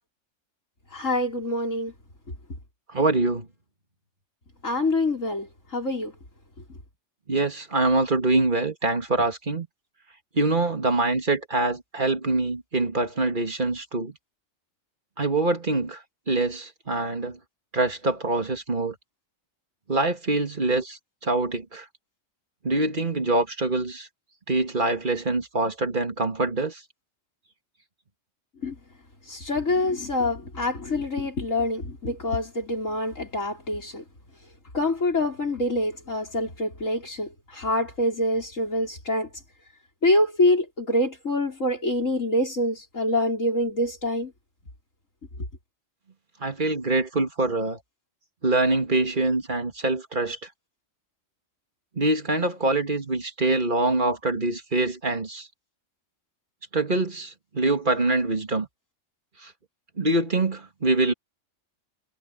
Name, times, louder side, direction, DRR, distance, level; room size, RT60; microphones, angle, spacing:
voice 1, 0.9-1.9 4.6-5.5 5.7-6.1 28.6-28.7 29.3-34.0 34.7-39.3 40.0-44.3, left 1 dB, 90° left, 5.8 m, -25 dB
voice 2, 2.9-3.5 7.3-9.7 10.3-14.1 15.2-16.0 16.3-17.4 17.7-18.9 19.9-21.9 22.6-24.1 24.5-26.8 46.4-47.8 48.4-50.4 52.0-55.5 56.7-58.7 59.4-59.5 60.0-61.1, right 2 dB, 40° right, 2.5 m, -24 dB
omnidirectional pair, 1.3 m